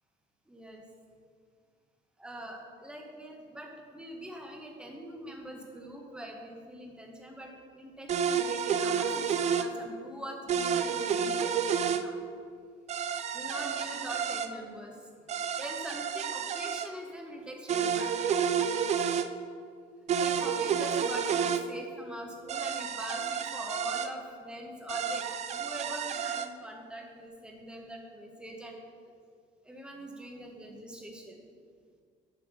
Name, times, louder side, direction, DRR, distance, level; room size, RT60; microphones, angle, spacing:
voice 1, 0.5-0.8 2.2-11.5 11.9-12.1 13.3-15.0 15.6-18.2 20.2-25.2 25.5-28.8 29.6-31.4, right 1 dB, 5° right, 1 dB, 1.2 m, -43 dB
sound 1, 8.1-9.7 10.5-12.0 12.9-14.5 15.3-16.9 17.7-19.3 20.1-21.6 22.5-24.1 24.9-26.5, right 7 dB, 40° right, 0.4 m, -30 dB
9.9 x 3.5 x 6.2 m, 2.1 s
cardioid pair, 110°, 17 cm